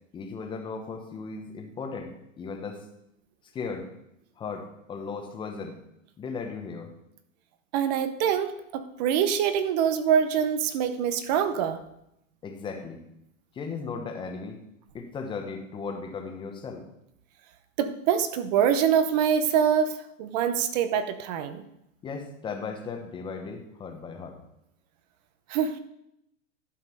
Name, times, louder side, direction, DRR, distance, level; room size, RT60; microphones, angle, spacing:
voice 1, 0.1-2.8 3.5-3.9 4.4-5.8 6.2-6.9 12.4-13.0 13.5-14.6 14.9-16.9 22.0-24.4, left 5 dB, 10° left, 4 dB, 1.0 m, -36 dB
voice 2, 7.7-11.8 17.8-21.6 25.5-25.8, right 8 dB, 30° right, 11 dB, 0.7 m, -25 dB
11.5 x 5.2 x 5.4 m, 0.79 s
hypercardioid pair, 155°, 39 cm